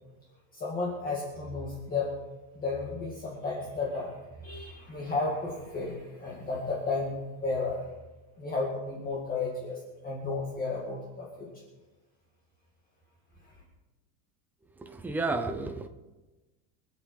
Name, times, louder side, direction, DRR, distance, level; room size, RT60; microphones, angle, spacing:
voice 1, 0.5-2.1 2.6-4.1 4.4-7.8 8.4-9.8 10.0-11.5, left 3 dB, 20° left, -3 dB, 2.0 m, -33 dB
voice 2, 14.8-15.9, right 3 dB, 5° right, 5 dB, 0.5 m, -32 dB
25.0 x 8.3 x 4.7 m, 1.1 s
cardioid pair, 175°, 45 cm